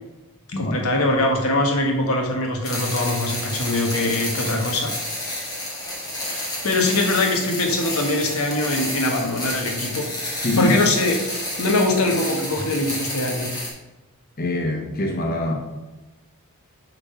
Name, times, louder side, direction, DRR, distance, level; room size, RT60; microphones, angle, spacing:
voice 1, 0.5-4.9 6.1-10.0 10.6-13.5, left 2 dB, 80° left, 1 dB, 1.4 m, -22 dB
sound 1, 2.6-13.7, left 1 dB, 20° left, 1.8 m, -30 dB
voice 2, 10.4-10.7 14.4-15.5, left 2 dB, 45° left, 1 dB, 0.8 m, -23 dB
6.9 x 4.0 x 5.5 m, 1.1 s
head